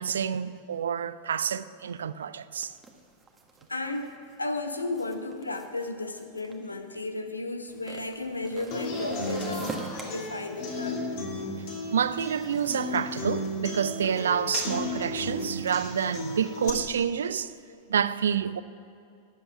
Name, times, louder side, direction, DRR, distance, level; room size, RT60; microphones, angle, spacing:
voice 1, 0.0-2.7 11.9-17.5 17.9-18.6, right 8 dB, 65° right, 0.4 m, -28 dB
sound 1, 2.6-7.1 7.7-10.0, right 3 dB, 15° right, 1.5 m, -43 dB
voice 2, 3.7-11.1, left 2 dB, 80° left, 0.9 m, -34 dB
Human voice / Acoustic guitar, 8.7-16.7, left 2 dB, 45° left, 2.7 m, -34 dB
19.5 x 7.8 x 5.9 m
figure-of-eight pair, 90°, 0 cm